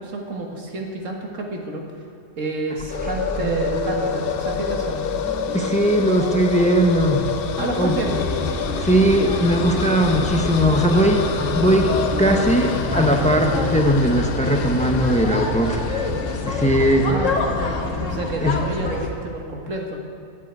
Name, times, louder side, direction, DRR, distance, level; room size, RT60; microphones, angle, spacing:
voice 1, 0.0-1.8 2.4-5.1 7.6-8.3 17.0-17.5 18.1-20.0, right 2 dB, 85° right, 1 dB, 1.9 m, -29 dB
sound 1, 2.8-15.5, right 1 dB, 15° right, 0.3 m, -33 dB
sound 2, 2.9-17.1, left 7 dB, 60° left, 0.7 m, -29 dB
voice 2, 5.5-7.3 7.8-7.9 8.8-11.3 11.5-11.9 12.2-15.8 16.5-17.1 18.4-18.6, right 1 dB, 5° left, 3 dB, 0.8 m, -19 dB
sound 3, 8.0-19.1, left 3 dB, 85° left, 1.7 m, -26 dB
11.0 x 8.6 x 9.0 m, 2.5 s
omnidirectional pair, 1.3 m